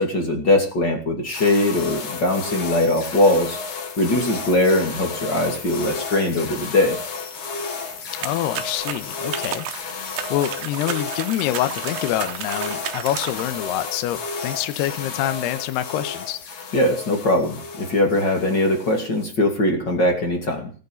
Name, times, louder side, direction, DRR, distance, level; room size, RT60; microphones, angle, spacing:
voice 1, 0.0-3.6 4.0-7.0 16.7-20.7, left 1 dB, 30° left, 4 dB, 2.3 m, -21 dB
sound 1, 1.2-19.2, left 4 dB, 50° left, 3.0 m, -33 dB
voice 2, 8.2-16.4, left 13 dB, 80° left, 11 dB, 2.9 m, -26 dB
sound 2, 8.2-13.5, right 11 dB, 70° right, 2.1 m, -33 dB
18.0 x 8.3 x 7.0 m, 0.40 s
omnidirectional pair, 4.9 m